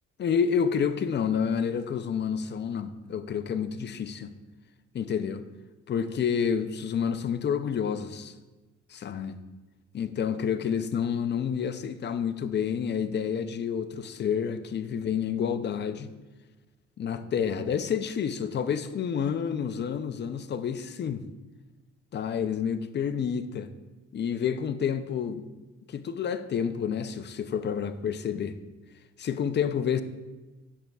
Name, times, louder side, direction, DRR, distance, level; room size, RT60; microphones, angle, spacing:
voice 1, 0.2-4.3 4.9-5.4 5.9-8.3 8.9-9.4 9.9-16.1 17.0-21.2 22.1-23.7 24.1-25.4 25.9-28.5 29.2-30.0, left 7 dB, 35° left, 11 dB, 0.4 m, -29 dB
8.5 x 6.6 x 2.3 m, 1.2 s
cardioid pair, 90°, 30 cm